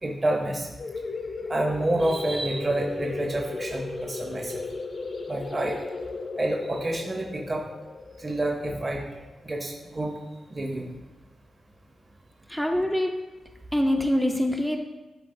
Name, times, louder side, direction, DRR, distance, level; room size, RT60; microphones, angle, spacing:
voice 1, 0.0-0.7 1.5-4.6 5.3-5.7 6.4-7.6 8.2-9.0 9.4-10.2 10.5-10.9, right 1 dB, 30° right, 0 dB, 0.8 m, -28 dB
sound 1, 0.8-10.1, left 3 dB, 45° left, 0.7 m, -36 dB
voice 2, 12.5-13.1 13.7-14.8, left 1 dB, ahead, 1 dB, 0.5 m, -24 dB
11.0 x 3.9 x 2.6 m, 1.1 s
wide cardioid pair, 100°, 0 cm